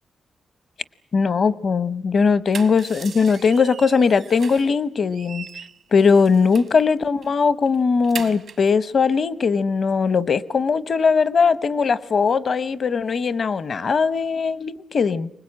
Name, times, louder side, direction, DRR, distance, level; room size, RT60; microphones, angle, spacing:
voice 1, 1.1-5.5 5.9-15.3, left 5 dB, 55° left, 16 dB, 0.8 m, -19 dB
sound 1, 2.3-4.8 5.1-6.8 7.2-7.4 7.7-8.7, right 6 dB, 70° right, 1.1 m, -38 dB
24.5 x 20.0 x 8.7 m, 0.77 s
cardioid pair, 65°, 0 cm